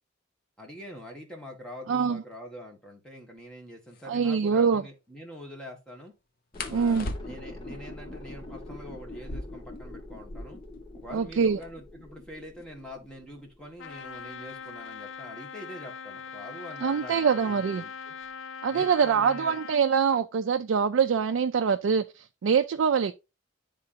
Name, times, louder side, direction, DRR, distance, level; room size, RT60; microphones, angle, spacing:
voice 1, 0.6-6.1 6.6-10.6 10.9-18.1 18.7-19.6, equal, 5° left, 1.5 m, -44 dB
voice 2, 1.9-2.2 4.1-4.8 6.7-7.1 11.1-11.6 16.8-17.8 18.6-23.1, right 6 dB, 85° right, 0.4 m, -24 dB
sound 1, 3.4-3.5 3.9-4.1 6.5-7.7 9.1-10.8 11.1-11.2 11.4-11.9 12.6-15.1 16.1-16.4 16.9-17.3 17.7-18.4, left 2 dB, 50° left, 0.8 m, -41 dB
sound 2, 6.5-14.3 14.6-14.7, left 2 dB, 25° left, 1.5 m, -44 dB
Trumpet, 13.8-19.8, left 6 dB, 80° left, 0.4 m, -41 dB
10.5 x 3.8 x 2.7 m
head